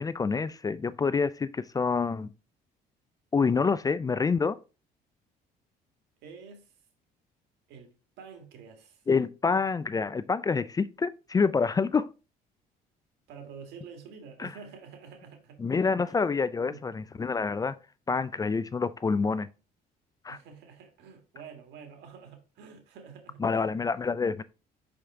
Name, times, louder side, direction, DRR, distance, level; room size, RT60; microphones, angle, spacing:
voice 1, 0.0-2.3 3.3-4.6 9.1-12.1 14.4-14.5 15.6-17.8 18.1-19.5 20.2-20.4 23.4-24.4, left 5 dB, 20° left, 0.4 m, -27 dB
voice 2, 6.2-6.7 7.7-9.0 13.3-15.6 16.1-16.2 16.6-16.9 20.3-23.8, right 6 dB, 85° right, 1.8 m, -48 dB
5.8 x 5.2 x 3.6 m
cardioid pair, 110°, 17 cm